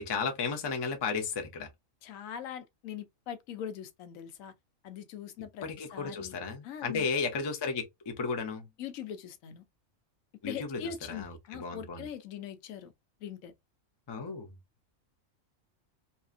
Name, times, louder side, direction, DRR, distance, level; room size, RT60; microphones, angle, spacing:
voice 1, 0.0-1.7 5.6-8.7 10.4-12.1 14.1-14.5, left 4 dB, 35° left, 0.4 m, -34 dB
voice 2, 2.0-4.5 4.8-6.4 6.6-7.1 8.8-9.6 10.4-12.9 13.2-13.5, left 9 dB, 85° left, 1.0 m, -41 dB
2.7 x 2.4 x 2.4 m
omnidirectional pair, 1.4 m